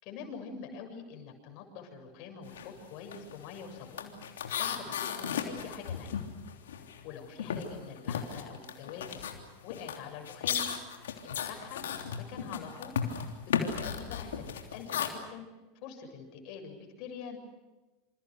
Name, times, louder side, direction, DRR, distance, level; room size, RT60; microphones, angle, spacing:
voice 1, 0.0-4.1 4.6-6.2 7.0-9.2 9.6-10.7 11.2-11.9 12.1-12.9 13.6-15.5 15.8-17.4, left 6 dB, 55° left, 4 dB, 7.3 m, -45 dB
sound 1, 2.5-2.7 3.0-7.1 7.4-15.1, left 8 dB, 75° left, 3.2 m, -35 dB
27.5 x 27.5 x 6.6 m, 1.1 s
hypercardioid pair, 90°, 0 cm